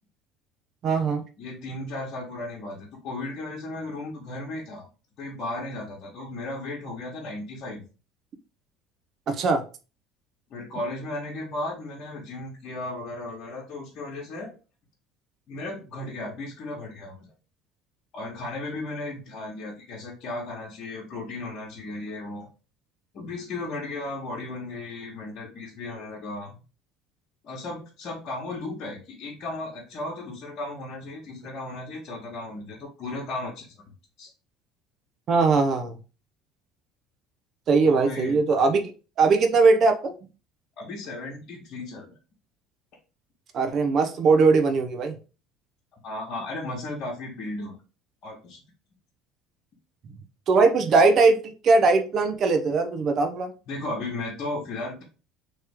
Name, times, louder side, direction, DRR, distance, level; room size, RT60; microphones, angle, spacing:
voice 1, 0.8-1.2 9.3-9.6 35.3-36.0 37.7-38.9 39.2-40.1 43.5-45.1 50.5-53.5, right 4 dB, 50° right, 6 dB, 0.7 m, -20 dB
voice 2, 1.4-4.9 5.2-7.8 10.5-14.5 15.5-17.2 18.1-22.5 23.1-26.6 27.4-33.9 34.2-34.3 37.8-38.4 40.8-42.1 46.0-47.7 48.2-48.6 53.7-55.0, left 2 dB, 55° left, -5 dB, 1.2 m, -35 dB
3.1 x 2.9 x 3.5 m, 0.34 s
hypercardioid pair, 75°, 0 cm